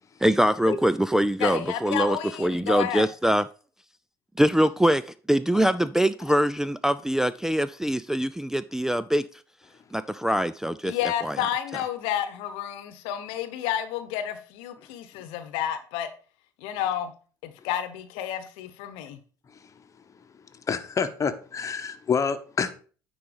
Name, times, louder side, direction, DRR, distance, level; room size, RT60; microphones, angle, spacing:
voice 1, 0.2-3.5 4.4-9.3 9.9-11.8, right 1 dB, 5° right, 0.3 m, -24 dB
voice 2, 1.4-3.0 10.8-16.1 16.6-17.1 17.6-19.2, left 10 dB, 65° left, 1.0 m, -30 dB
voice 3, 20.7-22.7, left 6 dB, 30° left, 1.0 m, -27 dB
9.5 x 3.9 x 5.0 m
hypercardioid pair, 60°, 10 cm